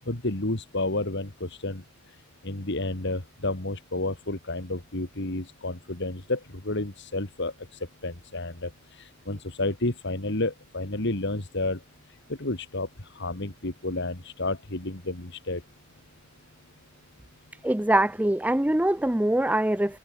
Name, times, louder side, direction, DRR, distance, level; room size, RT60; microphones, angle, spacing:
voice 1, 0.1-1.8 2.4-7.5 8.0-11.8 12.4-12.9 13.1-15.6, left 2 dB, 60° left, 2.5 m, -31 dB
voice 2, 17.6-20.0, right 1 dB, 10° right, 0.5 m, -23 dB
head